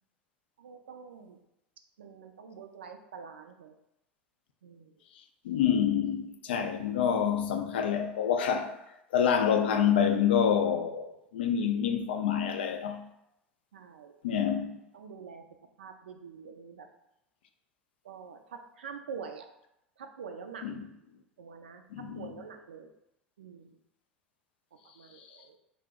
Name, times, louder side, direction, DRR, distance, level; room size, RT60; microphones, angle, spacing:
voice 1, 0.6-1.4 2.0-3.8 4.6-4.9 13.7-14.5 14.9-15.4 15.8-16.9 18.0-19.5 20.0-20.7 21.4-22.9 23.4-23.7 24.9-25.6, right 6 dB, 75° right, 0.3 m, -46 dB
voice 2, 5.4-8.8 9.1-13.0 14.2-14.8 20.6-20.9 21.9-22.3, left 8 dB, 70° left, 0.3 m, -27 dB
2.6 x 2.0 x 3.4 m
figure-of-eight pair, 75°, 6 cm